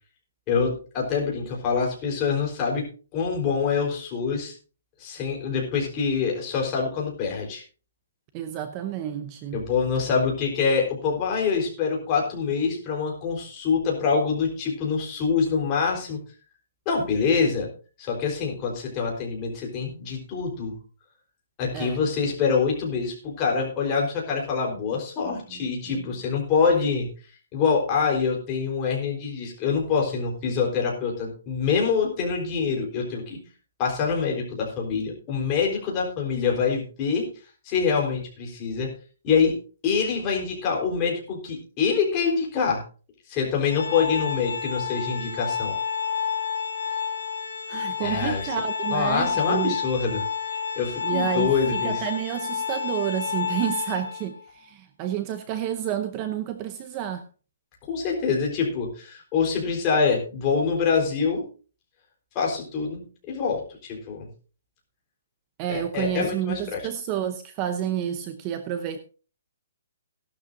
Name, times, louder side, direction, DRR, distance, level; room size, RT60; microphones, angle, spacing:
voice 1, 0.5-2.8 3.1-4.5 5.0-7.6 9.5-16.2 16.9-17.7 18.0-20.8 21.6-27.1 27.5-33.4 33.8-37.3 37.6-38.9 39.2-42.8 43.3-45.8 48.0-48.5 48.9-50.3 50.8-52.1 57.9-61.4 62.3-64.3 65.7-66.8, left 5 dB, 20° left, -1 dB, 4.0 m, -25 dB
voice 2, 8.3-9.6 21.7-22.0 25.2-26.1 47.7-49.8 51.0-57.2 65.6-69.0, right 10 dB, 20° right, 9 dB, 0.7 m, -30 dB
Organ, 43.7-54.4, left 7 dB, 60° left, 4.3 m, -30 dB
16.5 x 12.0 x 2.6 m, 0.36 s
hypercardioid pair, 170°, 0 cm